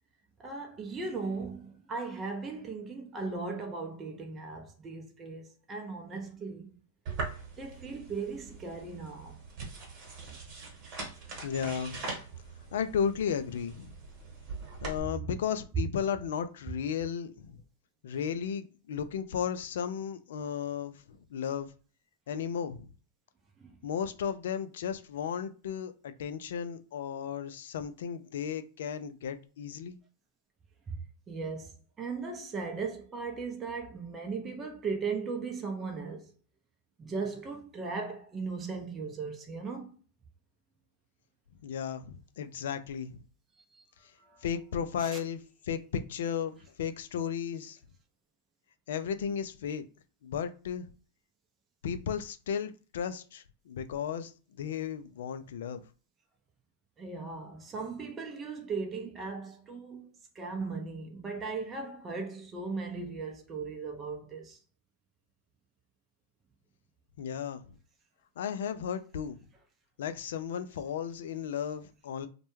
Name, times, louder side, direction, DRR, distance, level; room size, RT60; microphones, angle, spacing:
voice 1, 0.4-6.8 7.6-9.4 11.3-11.5 23.6-23.8 30.9-36.3 37.0-40.0 43.7-43.9 44.2-44.4 45.0-45.2 57.0-64.6, right 4 dB, 25° right, 0.5 m, -38 dB
sound 1, 7.1-15.0, right 3 dB, 45° right, 1.1 m, -42 dB
voice 2, 11.4-12.1 12.7-13.9 14.8-17.6 18.0-21.7 22.3-22.9 23.8-30.0 41.6-43.2 44.4-45.4 45.7-47.8 48.9-49.8 50.2-50.9 51.8-54.3 54.6-55.8 67.2-67.6 68.4-69.4 70.0-72.3, left 7 dB, 70° left, 0.3 m, -34 dB
2.2 x 2.1 x 3.0 m
hypercardioid pair, 100°, 0 cm